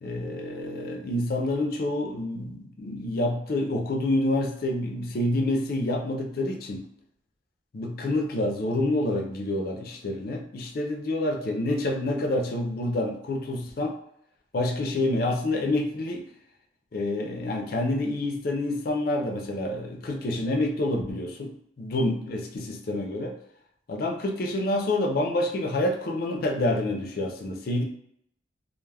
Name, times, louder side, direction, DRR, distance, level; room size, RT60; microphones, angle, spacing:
voice 1, 0.0-6.9 7.7-13.9 14.5-16.3 16.9-23.4 23.9-27.8, left 1 dB, 50° left, 2 dB, 0.4 m, -28 dB
2.2 x 2.0 x 3.2 m, 0.72 s
head